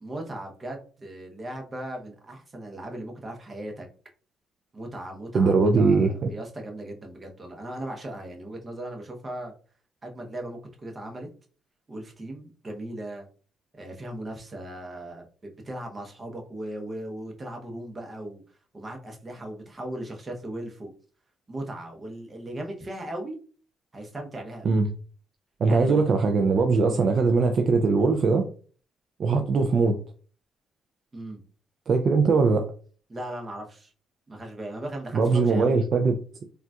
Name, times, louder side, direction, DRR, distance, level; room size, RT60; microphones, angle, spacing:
voice 1, 0.0-3.9 4.7-9.5 10.0-11.3 11.9-13.3 13.7-18.4 18.7-20.9 21.5-23.4 23.9-24.8 25.6-26.0 26.8-27.1 31.1-31.4 33.1-33.9 34.3-35.8, right 1 dB, 30° right, 2 dB, 0.8 m, -38 dB
voice 2, 5.3-6.3 24.6-24.9 25.6-28.5 29.2-30.0 31.9-32.7 35.1-36.1, right 4 dB, 55° right, 5 dB, 0.4 m, -21 dB
3.8 x 2.3 x 2.3 m, 0.40 s
cardioid pair, 90°, 0 cm